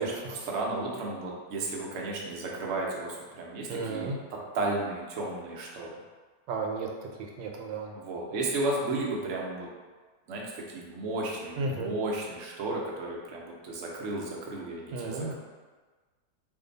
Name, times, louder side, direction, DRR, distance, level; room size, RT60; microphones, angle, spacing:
voice 1, 0.0-6.0 7.9-9.7 10.3-15.3, right 2 dB, 70° right, -3 dB, 0.7 m, -34 dB
voice 2, 3.7-4.2 6.5-7.9 11.6-11.9 14.9-15.3, right 3 dB, 85° right, 1 dB, 1.3 m, -33 dB
2.7 x 2.6 x 3.8 m, 1.4 s
omnidirectional pair, 2.0 m